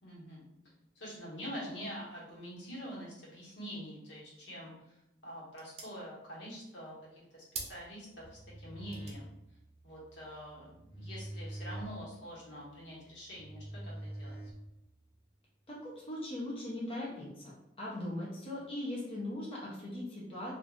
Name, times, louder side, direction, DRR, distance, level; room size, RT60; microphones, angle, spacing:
voice 1, 0.0-0.4 0.9-5.0 5.2-9.3 9.8-14.4, equal, 80° left, -6 dB, 1.2 m, -45 dB
sound 1, 4.5-11.3, right 4 dB, 35° right, 0.5 m, -51 dB
sound 2, 8.1-15.1, right 1 dB, 50° left, 1.3 m, -46 dB
voice 2, 15.7-17.5 17.8-20.5, left 1 dB, 30° left, -5 dB, 0.7 m, -39 dB
2.5 x 2.4 x 3.4 m, 0.86 s
head